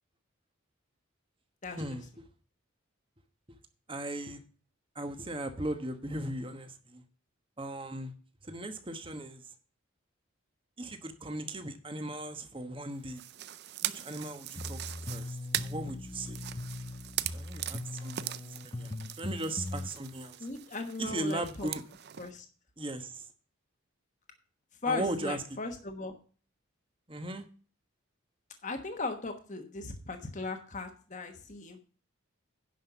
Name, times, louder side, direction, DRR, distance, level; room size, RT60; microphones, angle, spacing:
voice 1, 1.6-2.0 20.4-21.7 22.2-22.5 24.8-26.1 28.6-31.8, left 3 dB, 35° left, 5 dB, 1.2 m, -37 dB
voice 2, 3.9-4.4 4.9-7.0 7.6-8.1 8.4-9.4 10.8-13.2 13.8-16.4 17.3-18.9 19.2-20.4 21.0-21.8 22.8-23.2 24.9-25.4 27.1-27.4, right 1 dB, 25° right, 8 dB, 1.2 m, -37 dB
sound 1, 13.1-22.3, right 13 dB, 50° right, 0.5 m, -40 dB
sound 2, 14.6-19.9, left 2 dB, 20° left, 0.5 m, -40 dB
10.5 x 5.6 x 6.9 m, 0.38 s
head